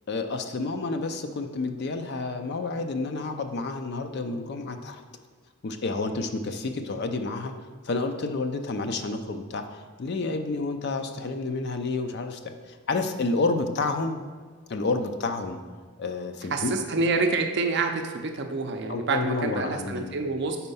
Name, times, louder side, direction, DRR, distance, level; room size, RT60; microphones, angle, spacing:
voice 1, 0.1-5.0 5.6-7.5 7.8-14.2 14.7-15.6 16.0-16.7 18.9-20.2, left 3 dB, 50° left, 7 dB, 0.4 m, -30 dB
voice 2, 16.5-20.6, right 3 dB, 50° right, 5 dB, 0.5 m, -27 dB
4.4 x 4.3 x 5.4 m, 1.5 s
head